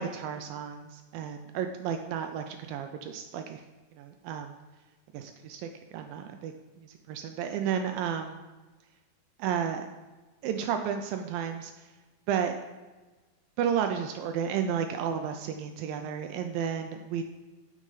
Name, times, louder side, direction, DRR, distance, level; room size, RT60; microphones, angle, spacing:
voice 1, 0.0-3.6 4.0-4.6 5.1-8.4 9.4-9.9 10.4-11.7 12.3-12.6 13.6-17.2, right 8 dB, 80° right, 6 dB, 2.2 m, -32 dB
9.0 x 6.5 x 4.9 m, 1.2 s
omnidirectional pair, 4.4 m